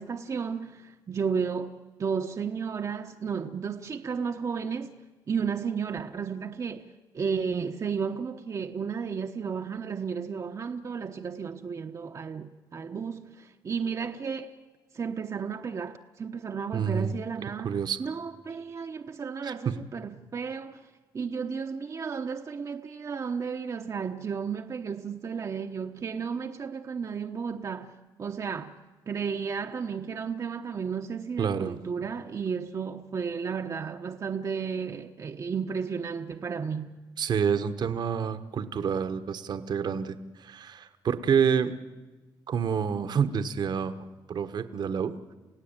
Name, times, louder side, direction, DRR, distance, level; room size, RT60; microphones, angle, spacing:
voice 1, 0.0-5.0 5.3-6.9 7.1-14.5 14.9-20.9 21.1-28.8 29.1-37.0, right 6 dB, 40° right, 1.0 m, -33 dB
voice 2, 16.7-17.1 17.6-18.0 19.4-19.7 31.4-31.8 37.2-41.7 42.5-45.1, right 7 dB, 55° right, 1.3 m, -28 dB
29.0 x 16.5 x 8.9 m
cardioid pair, 100°, 8 cm